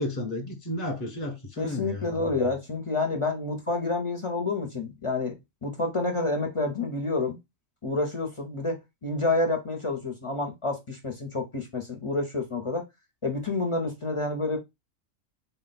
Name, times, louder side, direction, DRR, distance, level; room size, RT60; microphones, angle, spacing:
voice 1, 0.0-2.3, left 1 dB, 15° left, 0.9 m, -33 dB
voice 2, 1.6-5.3 5.6-7.4 7.8-12.8 13.2-14.6, left 3 dB, 35° left, 0.6 m, -28 dB
3.9 x 2.2 x 4.0 m
omnidirectional pair, 1.3 m